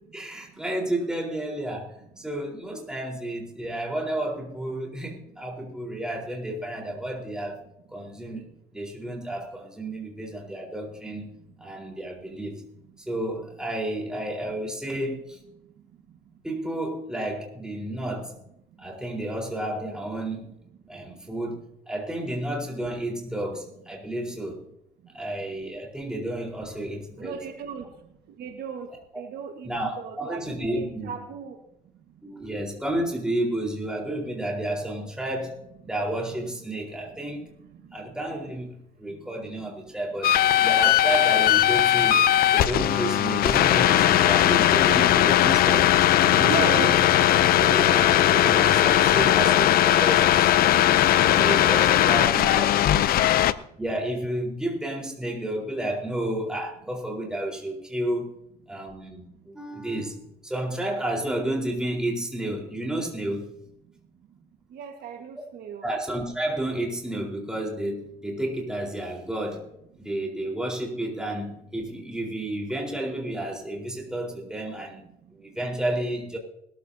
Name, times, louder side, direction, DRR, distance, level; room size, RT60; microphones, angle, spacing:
voice 1, 0.1-7.6 7.9-11.3 11.6-12.6 13.1-15.4 16.4-18.3 18.8-20.5 20.9-24.6 25.1-27.4 29.6-31.1 32.2-35.6 35.8-37.5 37.9-46.9 47.6-50.9 51.2-52.6 53.8-58.3 58.7-63.5 65.8-69.7 70.0-75.0 75.4-76.4, right 1 dB, 5° right, -1 dB, 4.3 m, -31 dB
voice 2, 27.2-27.9 28.4-28.9 29.2-29.7 30.0-31.6 46.4-46.9 51.9-53.1 64.7-65.9, right 7 dB, 70° right, 5 dB, 1.7 m, -36 dB
sound 1, 40.2-53.5, left 12 dB, 60° left, 0.6 m, -19 dB
21.0 x 14.0 x 2.8 m, 0.79 s
cardioid pair, 110°, 17 cm